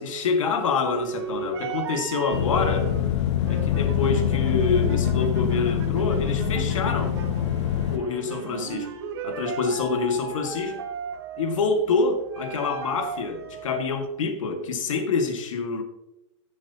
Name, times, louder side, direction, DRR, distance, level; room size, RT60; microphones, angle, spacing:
voice 1, 0.0-2.9 3.5-7.2 7.9-8.9 9.2-10.8 11.4-15.8, left 4 dB, 80° left, 5 dB, 2.0 m, -26 dB
sound 1, 0.7-13.9, right 6 dB, 50° right, 1.2 m, -36 dB
sound 2, 2.3-8.0, left 10 dB, 60° left, 0.8 m, -24 dB
15.0 x 7.5 x 2.9 m, 0.92 s
supercardioid pair, 175°, 17 cm